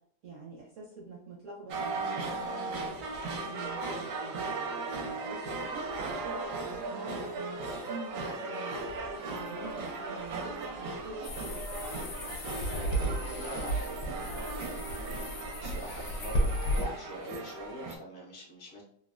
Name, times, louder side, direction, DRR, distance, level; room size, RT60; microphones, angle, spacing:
voice 1, 0.2-2.9 3.2-4.7 5.2-8.8 9.1-11.3, right 3 dB, 65° right, -4 dB, 0.7 m, -45 dB
sound 1, 1.7-18.0, right 3 dB, 80° right, 1.2 m, -37 dB
sound 2, 11.2-16.8, equal, 75° left, 1.0 m, -33 dB
voice 2, 12.6-15.3 15.6-18.8, equal, 45° left, -4 dB, 0.6 m, -44 dB
3.3 x 2.2 x 2.4 m, 0.69 s
omnidirectional pair, 1.9 m